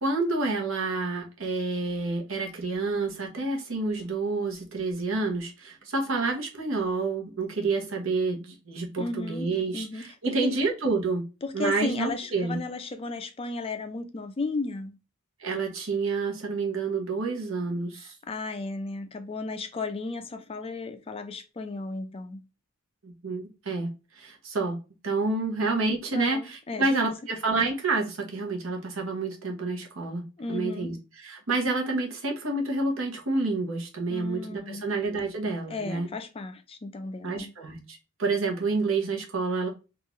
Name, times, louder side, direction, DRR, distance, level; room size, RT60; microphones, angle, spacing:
voice 1, 0.0-11.2 11.5-12.6 15.4-18.1 23.0-24.8 25.0-30.2 30.5-36.1 37.2-39.7, right 3 dB, 65° right, 1.0 m, -29 dB
voice 2, 9.0-10.5 11.4-14.9 18.0-22.4 26.1-26.9 30.4-30.9 34.1-34.9 35.7-37.5, left 3 dB, 25° left, 0.4 m, -34 dB
3.7 x 2.5 x 3.0 m
head